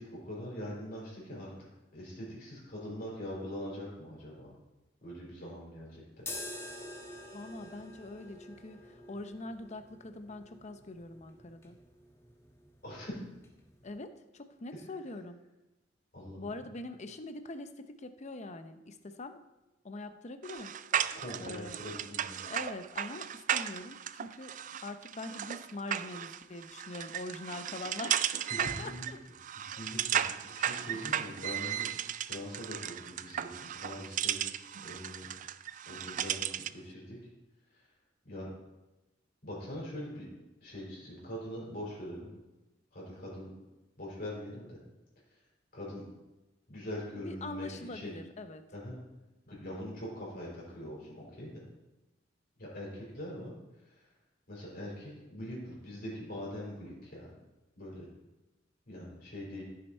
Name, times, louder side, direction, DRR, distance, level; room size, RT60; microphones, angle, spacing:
voice 1, 0.0-1.5 1.9-4.5 5.0-6.2 12.8-13.1 16.1-16.4 21.2-22.4 28.5-29.1 29.7-31.9 32.3-34.5 34.8-35.3 35.9-37.2 38.2-38.5 39.4-40.3 40.6-42.3 42.9-43.5 44.0-44.8 45.7-46.0 46.7-48.1 48.7-49.0 49.5-51.6 52.6-53.5 54.5-57.3 57.8-58.0 58.9-59.6, equal, 50° left, -5 dB, 4.3 m, -42 dB
sound 1, 6.2-14.0, left 1 dB, 15° left, 1.2 m, -48 dB
voice 2, 7.3-11.8 13.8-15.4 16.4-19.4 19.8-20.7 21.4-21.8 22.4-24.5 24.8-28.3 28.6-29.2 30.9-31.0 47.1-48.6, left 2 dB, 35° left, 9 dB, 0.7 m, -43 dB
sound 2, 20.4-36.8, right 10 dB, 40° right, 0.3 m, -35 dB
14.5 x 6.5 x 4.3 m, 1.0 s
head